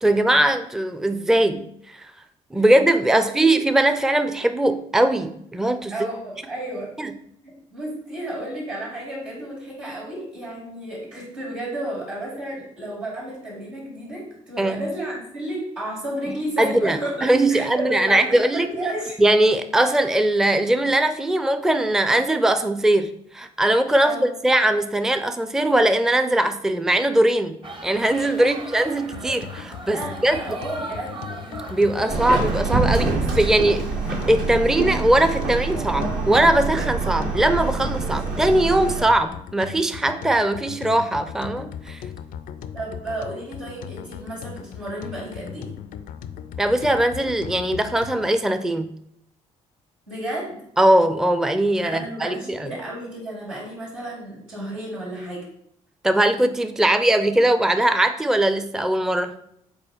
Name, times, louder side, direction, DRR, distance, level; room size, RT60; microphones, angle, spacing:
voice 1, 0.0-2.1 2.5-6.0 7.0-7.1 14.6-14.9 16.6-18.7 19.2-30.4 31.7-33.9 34.3-42.0 46.6-48.9 50.8-52.7 56.0-59.3, right 1 dB, 5° right, 9 dB, 0.5 m, -20 dB
voice 2, 3.1-3.5 5.9-6.9 7.4-19.2 24.0-24.3 28.4-28.6 29.9-31.2 42.7-45.7 50.1-50.6 51.8-55.5, right 1 dB, 85° right, -8 dB, 2.6 m, -32 dB
sound 1, 27.6-32.6, right 2 dB, 30° right, 0.9 m, -38 dB
sound 2, 29.1-48.3, left 8 dB, 55° left, 0.4 m, -38 dB
Subway metro underground, 32.1-39.0, right 4 dB, 60° right, 1.3 m, -25 dB
5.4 x 4.1 x 4.5 m, 0.72 s
figure-of-eight pair, 45°, 16 cm